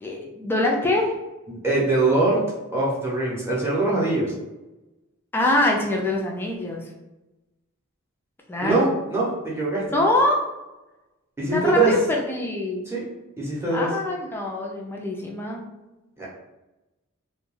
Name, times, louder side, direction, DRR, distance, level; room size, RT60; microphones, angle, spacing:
voice 1, 0.0-1.1 5.3-6.8 8.5-8.9 9.9-10.4 11.5-12.9 13.7-15.6, left 1 dB, 10° left, -1 dB, 0.3 m, -24 dB
voice 2, 1.5-2.4 2.7-4.3 8.6-9.8 11.4-11.9 12.9-13.0 13.4-13.9 16.2-16.3, right 2 dB, 10° right, -6 dB, 0.7 m, -22 dB
2.2 x 2.2 x 3.1 m, 1.0 s
head